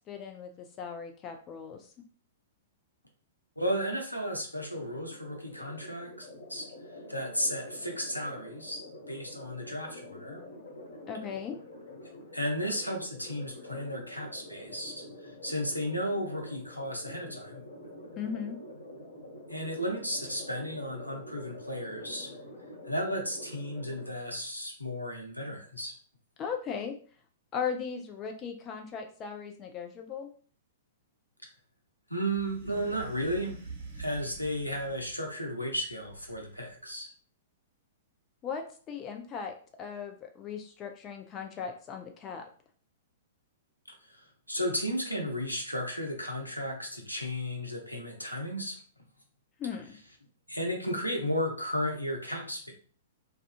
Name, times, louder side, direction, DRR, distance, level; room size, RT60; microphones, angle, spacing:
voice 1, 0.1-1.9 11.1-11.6 18.2-18.6 26.4-27.0 27.5-30.3 38.4-42.4 49.6-50.0, left 6 dB, 25° left, 4 dB, 0.3 m, -37 dB
voice 2, 3.6-6.7 7.1-8.8 9.1-10.4 12.3-17.6 19.5-22.3 22.8-25.9 32.1-33.6 34.0-37.1 44.1-44.2 44.5-48.8 50.5-52.7, equal, 90° left, 1 dB, 0.6 m, -34 dB
sound 1, 4.6-24.1, left 1 dB, 65° left, 0.9 m, -47 dB
sound 2, 32.3-35.3 35.9-36.8, right 4 dB, 40° right, 1.0 m, -45 dB
2.4 x 2.3 x 2.4 m, 0.43 s
figure-of-eight pair, 105°, 0 cm